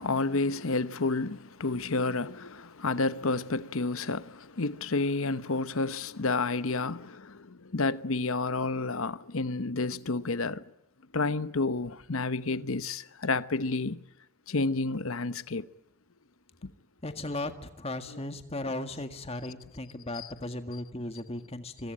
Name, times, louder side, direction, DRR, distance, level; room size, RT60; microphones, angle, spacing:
voice 1, 0.0-10.6 11.1-14.0 14.5-15.7 20.1-20.3, left 3 dB, 70° left, 1.0 m, -30 dB
voice 2, 17.0-21.9, left 2 dB, 25° left, 1.8 m, -36 dB
25.5 x 24.5 x 8.8 m
head